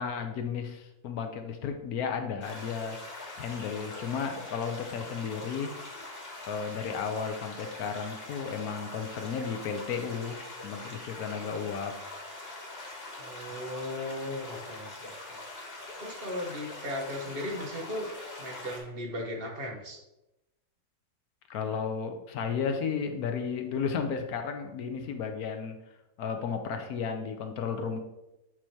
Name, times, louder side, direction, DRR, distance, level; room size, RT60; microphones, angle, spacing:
voice 1, 0.0-3.0 3.4-5.9 6.4-10.4 10.6-12.0 21.5-25.8 26.2-28.0, left 6 dB, 75° left, 6 dB, 1.2 m, -33 dB
sound 1, 2.4-18.8, left 2 dB, 40° left, 1.6 m, -43 dB
voice 2, 13.2-15.4 16.0-18.1 18.4-20.0, left 1 dB, 40° right, 0 dB, 1.2 m, -37 dB
8.0 x 2.9 x 4.5 m, 0.93 s
omnidirectional pair, 1.6 m